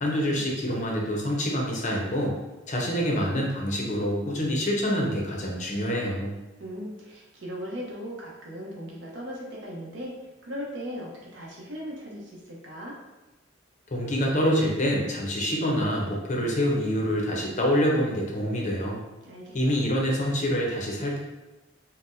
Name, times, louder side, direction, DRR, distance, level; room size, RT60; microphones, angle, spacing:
voice 1, 0.0-2.3 2.7-6.3 13.9-19.0 19.5-21.2, equal, 40° left, -1 dB, 0.6 m, -26 dB
voice 2, 6.6-10.1 10.4-13.0 19.2-19.7, equal, 75° right, -3 dB, 0.8 m, -38 dB
3.9 x 2.1 x 2.6 m, 1.1 s
head